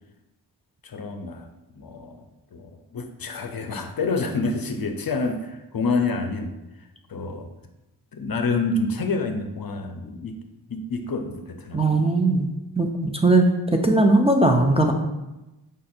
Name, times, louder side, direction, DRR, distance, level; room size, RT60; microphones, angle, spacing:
voice 1, 0.8-1.5 1.7-2.2 2.5-6.5 7.1-7.5 8.1-10.4 10.7-12.0, left 3 dB, 55° left, 6 dB, 0.5 m, -28 dB
voice 2, 11.7-12.5 12.8-14.9, right 2 dB, 15° right, 2 dB, 0.4 m, -19 dB
5.1 x 2.5 x 4.2 m, 1.0 s
wide cardioid pair, 65°, 44 cm